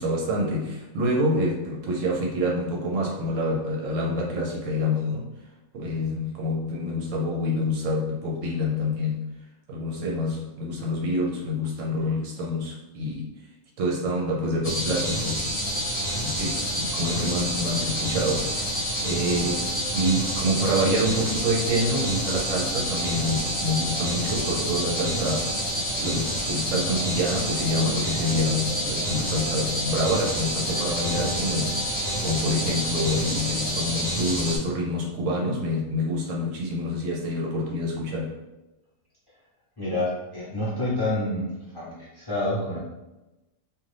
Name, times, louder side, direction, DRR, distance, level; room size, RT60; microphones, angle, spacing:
voice 1, 0.0-5.3 5.7-9.2 9.7-13.3 13.8-15.5 16.2-19.7 19.9-31.8 32.2-38.4, left 1 dB, 70° right, -2 dB, 1.0 m, -27 dB
sound 1, 14.6-34.6, equal, 50° left, 1.1 m, -28 dB
sound 2, 15.6-34.1, right 2 dB, 50° right, 0.6 m, -39 dB
voice 2, 39.8-42.8, left 1 dB, 20° left, -9 dB, 0.8 m, -28 dB
2.5 x 2.5 x 3.2 m, 1.0 s
omnidirectional pair, 1.4 m